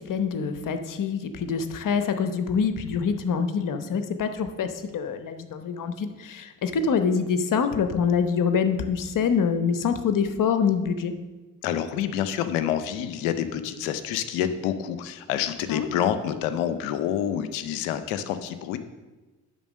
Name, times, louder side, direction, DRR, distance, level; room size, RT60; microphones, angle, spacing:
voice 1, 0.1-11.1 15.7-15.9, left 6 dB, 55° left, 8 dB, 0.9 m, -25 dB
voice 2, 11.6-18.8, left 10 dB, 85° left, 11 dB, 0.6 m, -28 dB
10.5 x 3.8 x 6.3 m, 1.2 s
hypercardioid pair, 40°, 39 cm